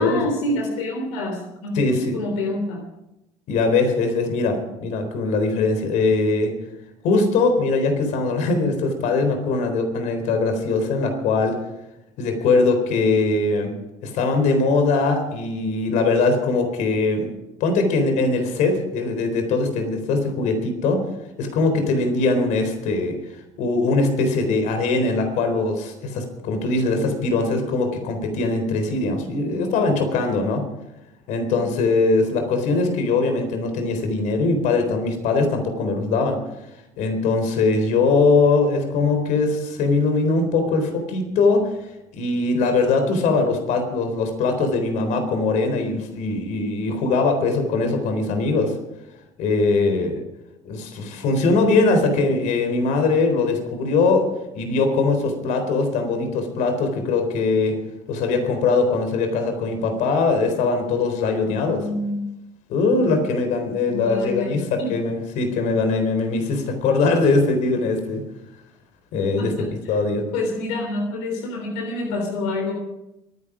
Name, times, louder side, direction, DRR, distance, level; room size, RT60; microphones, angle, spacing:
voice 1, 0.0-2.8 31.5-31.6 61.6-62.3 63.9-64.9 69.4-70.0 70.3-72.7, left 2 dB, 90° left, 2 dB, 3.7 m, -27 dB
voice 2, 1.7-2.2 3.5-6.5 7.0-11.6 12.2-13.7 14.0-17.3 17.6-21.0 21.4-23.2 23.6-30.6 31.3-36.4 37.0-41.8 42.1-48.8 49.4-50.2 50.6-54.3 54.5-57.8 58.1-61.8 62.7-68.2 69.1-69.5 69.9-70.2, left 3 dB, 70° left, 6 dB, 4.0 m, -21 dB
23.5 x 10.5 x 5.1 m, 0.90 s
supercardioid pair, 90°, 13 cm